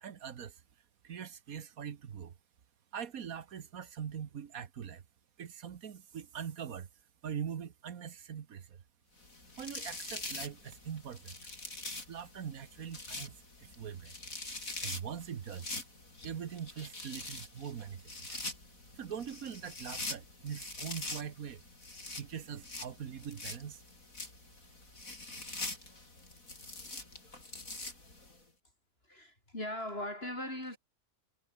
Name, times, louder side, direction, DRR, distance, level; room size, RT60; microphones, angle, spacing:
voice 1, 0.0-0.6 1.0-2.3 2.9-5.0 5.4-6.9 7.2-8.8 9.6-11.3 12.1-14.1 14.8-15.8 16.2-18.0 18.3-18.4 19.0-21.6 22.1-23.8, right 8 dB, 65° right, 1.6 m, -42 dB
sound 1, 9.2-28.4, left 2 dB, 60° left, 6.0 m, -44 dB
voice 2, 29.1-30.8, left 1 dB, 40° left, 6.5 m, -39 dB
omnidirectional pair, 1.6 m